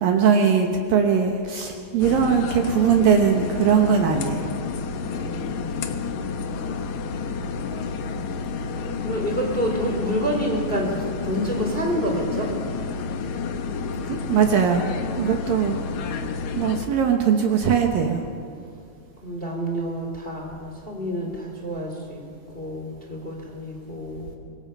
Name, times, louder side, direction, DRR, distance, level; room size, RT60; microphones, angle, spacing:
voice 1, 0.0-4.5 14.1-14.8 15.2-15.8 16.6-18.2, right 7 dB, 65° right, 3 dB, 2.6 m, -20 dB
sound 1, 2.0-16.9, left 5 dB, 85° left, 1.6 m, -30 dB
voice 2, 5.0-5.8 9.0-12.5 19.2-22.2 22.5-24.4, equal, 15° left, 1 dB, 2.3 m, -28 dB
25.5 x 22.5 x 5.6 m, 2.3 s
omnidirectional pair, 5.0 m